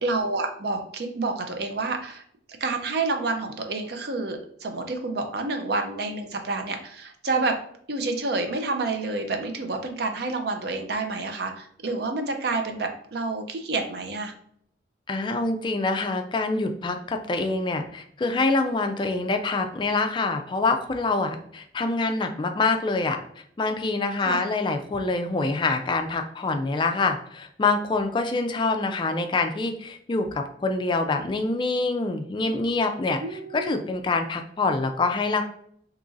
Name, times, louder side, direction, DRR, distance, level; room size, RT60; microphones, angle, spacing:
voice 1, 0.0-2.2 2.6-7.5 7.9-14.3 24.2-24.4 33.2-33.8, right 3 dB, 55° right, 5 dB, 0.5 m, -28 dB
voice 2, 15.1-23.2 23.6-35.4, left 3 dB, 25° left, 6 dB, 0.3 m, -25 dB
3.0 x 2.5 x 3.8 m, 0.65 s
head